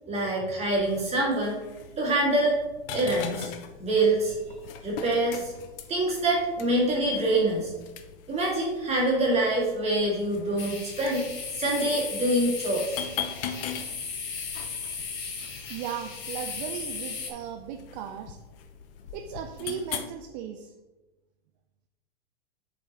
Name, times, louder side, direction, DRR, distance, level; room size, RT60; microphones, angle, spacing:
voice 1, 0.1-1.6 2.0-2.6 2.9-3.5 3.8-4.4 4.8-5.5 5.9-7.7 8.3-11.3 11.5-13.0, right 1 dB, 20° right, -4 dB, 2.0 m, -25 dB
sound 1, 0.7-20.1, left 8 dB, 55° left, 0.7 m, -42 dB
sound 2, 10.6-17.3, left 5 dB, 35° left, 1.2 m, -36 dB
voice 2, 15.7-18.4 19.1-20.7, right 9 dB, 40° right, 5 dB, 0.4 m, -36 dB
7.6 x 4.8 x 2.9 m, 1.2 s
hypercardioid pair, 115°, 33 cm